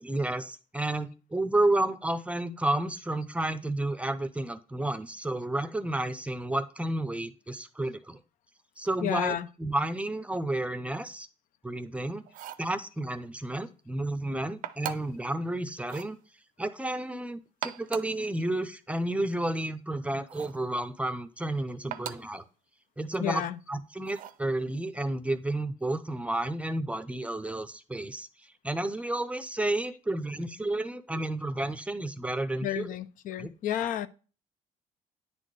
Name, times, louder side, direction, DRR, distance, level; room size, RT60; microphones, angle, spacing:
voice 1, 0.0-8.2 8.8-11.3 11.6-12.2 12.6-16.2 16.6-22.4 23.0-28.3 28.6-32.9 33.4-33.5, right 1 dB, 10° right, 0.5 m, -31 dB
voice 2, 9.0-9.5 23.2-23.6 32.6-34.1, left 11 dB, 65° left, 0.5 m, -31 dB
sound 1, 12.3-12.7 14.6-15.2 15.8-16.2 17.5-18.2 20.3-20.6 21.9-22.4 24.0-24.4, right 11 dB, 65° right, 0.5 m, -39 dB
9.9 x 4.2 x 3.2 m
cardioid pair, 115°, 15 cm